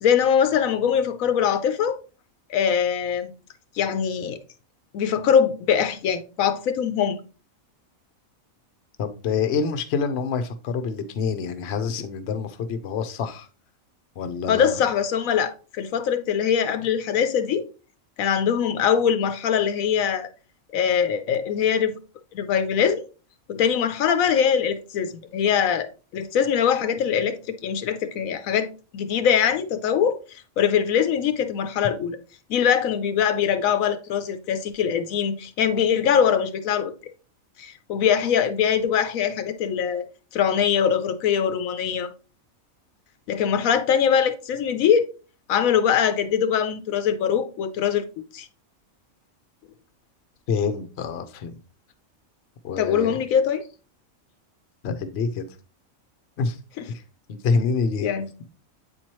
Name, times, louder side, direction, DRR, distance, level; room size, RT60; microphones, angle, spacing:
voice 1, 0.0-2.0 2.5-3.3 3.8-4.4 4.9-7.2 14.5-17.6 18.2-20.3 20.7-22.0 22.3-23.1 23.5-25.9 26.1-32.2 32.5-36.9 37.6-40.0 40.3-42.1 43.3-45.0 45.5-48.0 48.3-48.5 52.8-53.6 56.8-56.9 58.0-58.3, left 8 dB, 80° left, 1.0 m, -22 dB
voice 2, 9.0-13.5 14.2-14.7 50.5-51.6 52.6-53.1 54.8-55.5 56.4-56.6 57.3-58.1, left 5 dB, 55° left, 0.9 m, -26 dB
8.2 x 4.4 x 3.0 m
omnidirectional pair, 1.4 m